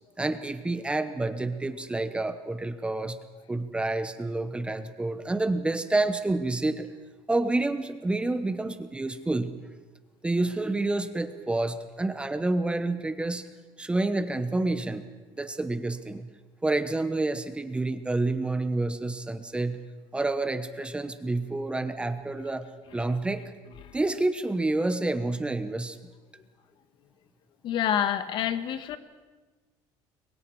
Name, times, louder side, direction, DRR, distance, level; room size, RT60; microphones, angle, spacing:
voice 1, 0.2-3.2 3.5-6.9 7.3-9.5 10.2-13.5 13.8-15.0 15.3-16.3 16.6-19.8 20.1-23.5 23.9-26.0, right 2 dB, 10° right, 10 dB, 1.1 m, -28 dB
voice 2, 27.6-29.0, left 10 dB, 55° left, 11 dB, 1.4 m, -27 dB
30.0 x 23.5 x 4.7 m, 1.3 s
cardioid pair, 140°, 10 cm